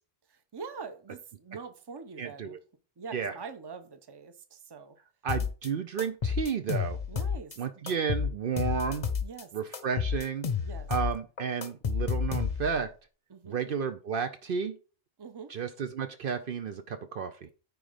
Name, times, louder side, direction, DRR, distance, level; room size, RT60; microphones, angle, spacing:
voice 1, 0.3-2.6 3.0-5.0 7.1-7.8 9.2-9.5 10.6-10.9 13.3-13.6 15.2-15.5, right 5 dB, 25° right, 0.7 m, -44 dB
voice 2, 2.2-2.6 3.1-3.3 5.2-7.0 7.6-9.1 9.5-10.5 10.9-12.9 13.5-14.8 15.5-17.5, right 6 dB, 60° right, 0.8 m, -32 dB
sound 1, 5.3-5.7 6.0-7.6 7.9-9.4 9.7-12.8, left 6 dB, 40° left, 0.7 m, -31 dB
9.4 x 3.8 x 5.0 m
omnidirectional pair, 1.1 m